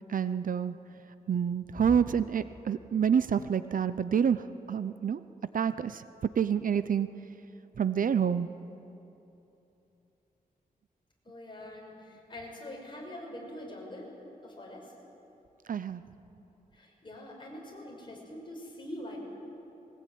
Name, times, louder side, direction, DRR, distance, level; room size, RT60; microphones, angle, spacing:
voice 1, 0.1-0.7 1.3-4.4 4.7-5.2 5.5-6.0 6.4-7.1 7.8-8.5 15.7-16.0, right 7 dB, 60° right, 13 dB, 0.6 m, -27 dB
voice 2, 11.2-14.1 14.4-14.9 16.7-19.2, left 1 dB, 30° left, -2 dB, 5.9 m, -44 dB
21.5 x 19.0 x 9.3 m, 3.0 s
wide cardioid pair, 145°, 16 cm